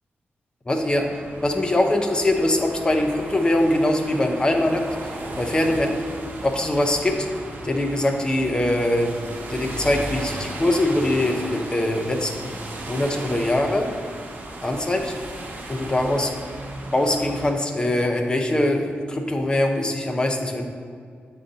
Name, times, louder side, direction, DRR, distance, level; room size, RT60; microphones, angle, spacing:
voice 1, 0.7-1.1 1.4-5.9 6.4-7.3 7.6-9.1 9.5-12.5 12.9-13.9 14.6-15.2 15.7-16.3 16.9-20.6, left 1 dB, 20° left, 3 dB, 0.6 m, -22 dB
sound 1, 0.8-17.5, right 1 dB, 50° right, 1.0 m, -36 dB
8.9 x 4.0 x 3.9 m, 2.2 s
wide cardioid pair, 150°, 4 cm